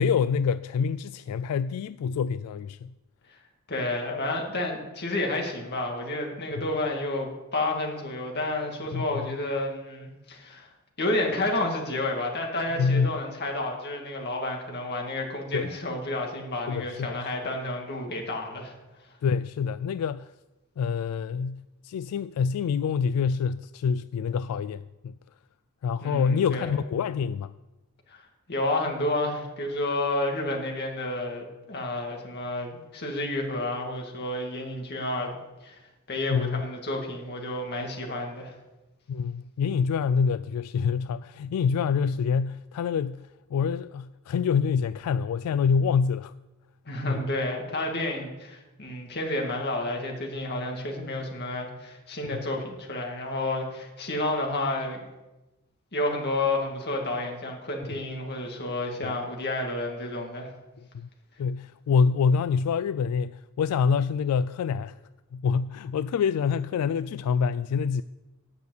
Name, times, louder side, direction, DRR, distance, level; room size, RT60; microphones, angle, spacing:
voice 1, 0.0-2.9 6.6-6.7 8.9-9.3 12.8-13.1 15.5-15.7 16.7-17.3 19.2-20.3 20.8-25.1 25.8-27.5 36.3-36.6 39.1-46.3 47.0-47.3 52.2-52.4 59.0-59.2 60.9-61.1 61.4-65.0 65.3-68.0, left 6 dB, 85° left, 0.3 m, -26 dB
voice 2, 3.7-10.7 11.0-18.7 26.0-26.8 28.1-28.2 28.5-35.4 35.6-35.8 36.1-38.5 46.9-55.1 55.9-60.5, left 2 dB, 50° left, 2.3 m, -30 dB
9.3 x 6.7 x 8.1 m
head